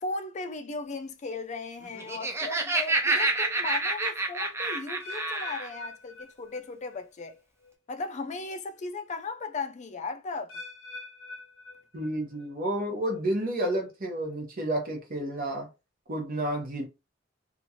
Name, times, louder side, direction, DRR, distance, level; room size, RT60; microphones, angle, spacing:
voice 1, 0.0-7.4 7.9-10.6, left 3 dB, 35° left, 0.4 m, -36 dB
Laughter, 1.9-5.7, right 2 dB, 15° right, 0.5 m, -28 dB
sound 1, 5.0-7.0 7.3-7.7 8.4-8.5 10.5-12.4 12.8-13.2 13.9-14.0, left 2 dB, 80° left, 0.7 m, -45 dB
voice 2, 11.9-15.7 16.1-16.9, right 1 dB, 45° right, 0.9 m, -30 dB
3.0 x 2.5 x 2.7 m
head